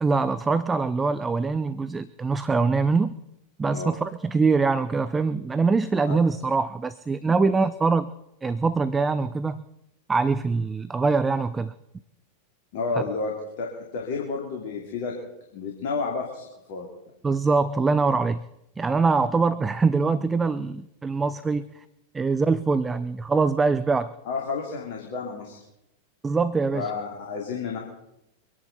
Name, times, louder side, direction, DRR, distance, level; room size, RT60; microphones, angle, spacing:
voice 1, 0.0-3.1 3.6-8.1 8.4-9.7 10.1-11.7 17.2-18.4 18.8-21.7 22.1-24.1 26.2-26.9, right 4 dB, 15° right, 14 dB, 0.5 m, -23 dB
voice 2, 12.7-15.1 15.5-16.9 24.3-25.6 26.7-27.8, left 4 dB, 50° left, -1 dB, 2.7 m, -31 dB
24.5 x 10.5 x 4.1 m, 0.85 s
figure-of-eight pair, 90°, 0 cm